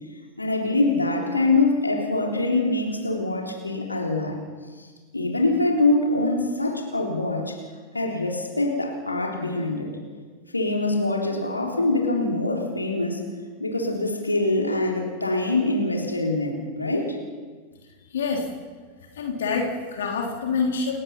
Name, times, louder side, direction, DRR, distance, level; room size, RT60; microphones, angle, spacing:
voice 1, 0.4-4.4 4.8-4.9 5.1-7.6 7.9-9.9 10.5-13.2 13.6-17.2, left 2 dB, 80° left, 0 dB, 3.7 m, -24 dB
voice 2, 18.1-18.5 19.2-21.0, left 4 dB, 60° left, 1 dB, 3.4 m, -26 dB
29.5 x 16.5 x 5.8 m, 1.5 s
figure-of-eight pair, 90°, 0 cm